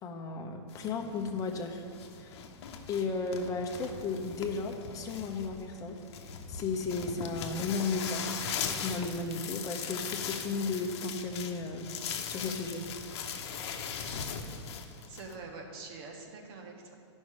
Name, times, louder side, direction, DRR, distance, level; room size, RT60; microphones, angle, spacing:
voice 1, 0.0-1.8 2.1-2.4 2.9-6.0 6.5-8.3 8.8-11.9 12.2-12.8, left 4 dB, 20° left, 2 dB, 0.8 m, -34 dB
sound 1, 0.7-15.3, left 7 dB, 60° left, 0.9 m, -40 dB
voice 2, 15.1-16.9, right 3 dB, 55° right, 2 dB, 1.5 m, -45 dB
11.0 x 5.4 x 4.9 m, 2.3 s
hypercardioid pair, 125°, 15 cm